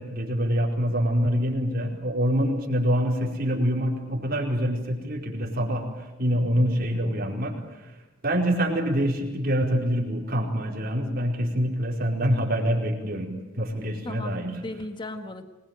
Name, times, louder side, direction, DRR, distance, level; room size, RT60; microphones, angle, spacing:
voice 1, 0.0-7.6 7.8-7.9 8.2-14.6, equal, 45° right, 0 dB, 4.6 m, -25 dB
voice 2, 6.9-7.7 14.0-14.4 14.6-15.4, left 2 dB, 25° left, 7 dB, 1.6 m, -38 dB
25.0 x 21.0 x 9.1 m, 1.0 s
head